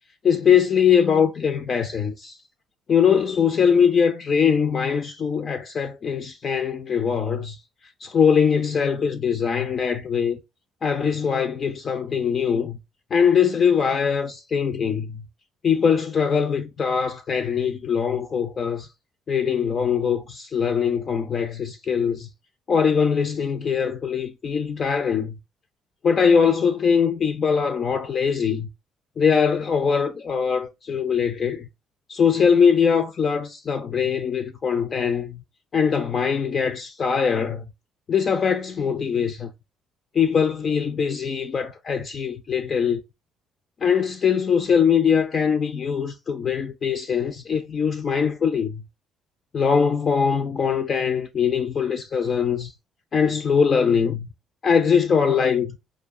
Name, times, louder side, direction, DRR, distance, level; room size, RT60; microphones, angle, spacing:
voice 1, 0.2-2.4 2.9-7.6 8.0-10.4 10.8-12.8 13.1-15.2 15.6-18.9 19.3-22.3 22.7-25.4 26.0-28.7 29.2-31.7 32.1-35.4 35.7-37.6 38.1-39.5 40.1-43.0 43.8-48.8 49.5-52.7 53.1-54.3 54.6-55.8, left 6 dB, 35° left, 0.3 m, -22 dB
4.7 x 2.6 x 2.3 m
cardioid pair, 160°, 0 cm